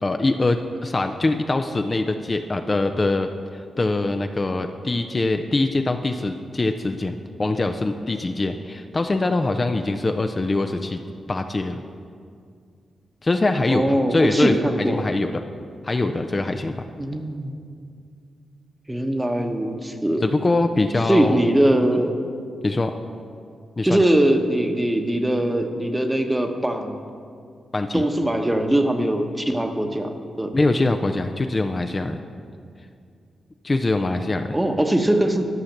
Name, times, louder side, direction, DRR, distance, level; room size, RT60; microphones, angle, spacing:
voice 1, 0.0-11.0 11.3-11.8 13.2-15.4 15.8-16.8 20.2-21.4 21.8-22.0 22.6-22.9 23.8-24.0 27.7-28.1 30.5-32.2 33.6-34.6, left 2 dB, 30° left, 6 dB, 0.5 m, -23 dB
voice 2, 13.7-15.0 17.0-17.5 18.9-20.3 21.1-22.1 23.8-27.0 27.9-30.6 34.5-35.5, right 1 dB, 15° right, 5 dB, 1.0 m, -21 dB
11.5 x 5.7 x 6.6 m, 2.3 s
cardioid pair, 65°, 0 cm